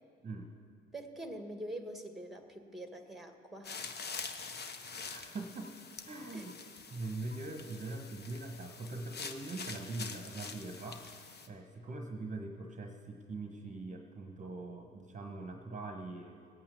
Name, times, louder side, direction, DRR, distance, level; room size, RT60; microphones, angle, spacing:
voice 1, 0.9-3.9 6.3-6.5, right 1 dB, ahead, 6 dB, 1.6 m, -45 dB
sound 1, 3.6-11.5, left 5 dB, 30° left, 1.1 m, -45 dB
voice 2, 5.1-5.7 6.0-6.5 6.9-11.2 11.5-16.4, right 2 dB, 25° right, 4 dB, 1.3 m, -42 dB
18.0 x 8.8 x 6.9 m, 2.2 s
hypercardioid pair, 60°, 31 cm